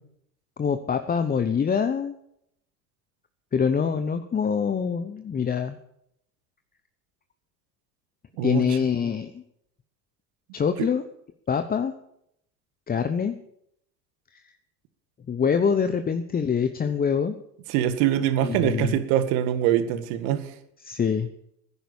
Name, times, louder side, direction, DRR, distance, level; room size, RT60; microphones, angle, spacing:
voice 1, 0.6-2.1 3.5-5.8 8.4-9.4 10.5-11.0 11.5-11.9 12.9-13.4 15.3-17.4 18.4-19.0 20.8-21.3, left 6 dB, 20° left, 9 dB, 0.9 m, -25 dB
voice 2, 8.4-8.7 10.8-10.9 17.7-20.5, right 11 dB, 55° right, 10 dB, 1.9 m, -23 dB
15.5 x 10.5 x 7.1 m, 0.74 s
hypercardioid pair, 85°, 50 cm